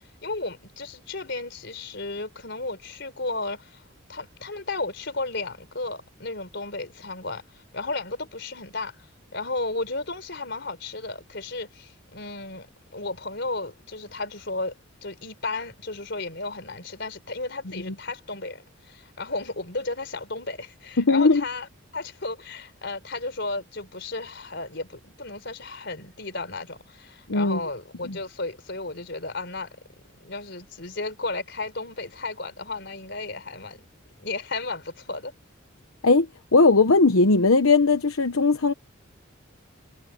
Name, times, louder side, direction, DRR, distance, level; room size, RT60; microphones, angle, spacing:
voice 1, 0.2-3.8 4.1-9.0 9.3-12.7 12.9-14.7 15.0-21.7 21.9-29.7 30.2-33.8 34.2-35.3, left 3 dB, 55° left, 4.4 m, -34 dB
voice 2, 21.0-21.4 27.3-27.6 28.0-28.2 36.0-36.3 36.5-38.7, left 3 dB, 80° left, 1.0 m, -18 dB
head